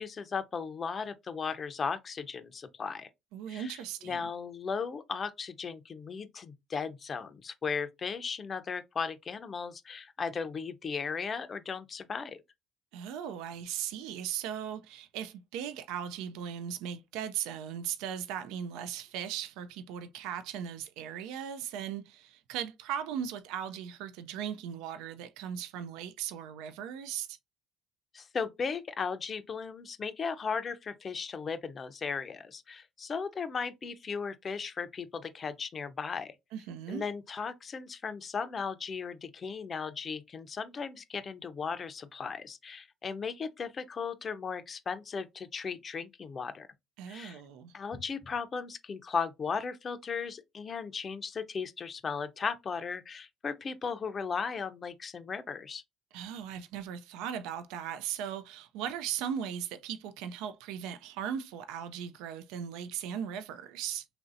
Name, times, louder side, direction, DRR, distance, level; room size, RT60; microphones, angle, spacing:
voice 1, 0.0-3.1 3.5-12.4 28.1-36.3 36.9-46.7 47.1-47.4 47.7-55.8, left 5 dB, 40° left, 0.5 m, -36 dB
voice 2, 3.3-4.3 12.9-27.4 36.5-37.0 47.0-47.7 56.1-64.0, right 9 dB, 85° right, 0.3 m, -38 dB
3.0 x 2.6 x 2.4 m
supercardioid pair, 85°, 0 cm